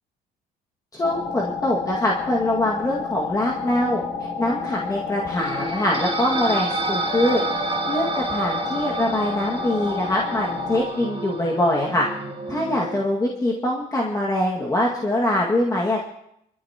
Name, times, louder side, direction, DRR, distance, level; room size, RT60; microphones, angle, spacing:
voice 1, 0.9-4.0 4.4-7.4 7.9-12.1 12.5-16.0, left 1 dB, 20° left, -3 dB, 2.0 m, -23 dB
sound 1, 1.0-10.8, left 5 dB, 40° left, 2.5 m, -30 dB
sound 2, 5.4-13.0, right 4 dB, 30° right, 2.8 m, -30 dB
23.5 x 14.5 x 3.0 m, 0.75 s
cardioid pair, 110°, 17 cm